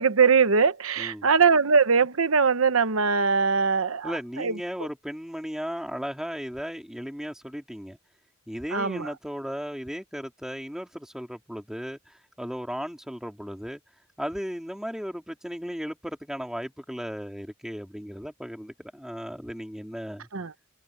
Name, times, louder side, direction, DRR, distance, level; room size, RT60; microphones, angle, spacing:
voice 1, 0.0-4.6 8.7-9.1 20.3-20.5, right 5 dB, 90° right, 1.0 m, -22 dB
voice 2, 4.0-8.0 8.5-13.8 14.2-20.3, equal, 5° right, 2.8 m, -36 dB
head